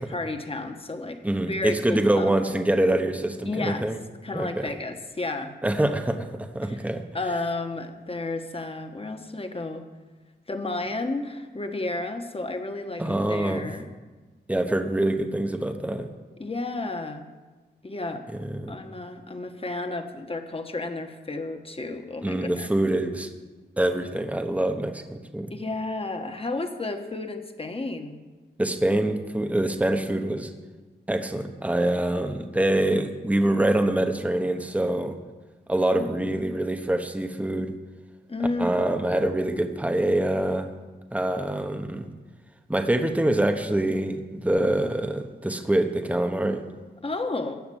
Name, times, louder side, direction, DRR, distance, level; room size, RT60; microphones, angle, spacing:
voice 1, 0.0-1.2 1.5-2.3 3.4-3.9 4.2-5.5 6.7-6.8 7.1-9.9 10.5-13.9 16.4-17.3 17.8-18.2 18.7-22.7 25.5-28.2 35.8-36.3 38.3-39.2 47.0-47.6, left 2 dB, 30° left, 6 dB, 1.3 m, -32 dB
voice 2, 1.2-4.0 4.3-4.7 5.6-7.0 13.0-13.7 14.5-16.1 18.4-18.8 22.2-23.3 23.8-25.5 28.6-30.5 31.1-35.1 35.7-37.7 38.6-40.7 41.1-42.1 42.7-46.6, right 1 dB, 10° right, 6 dB, 1.0 m, -25 dB
16.0 x 5.9 x 9.9 m, 1.3 s
wide cardioid pair, 115°, 19 cm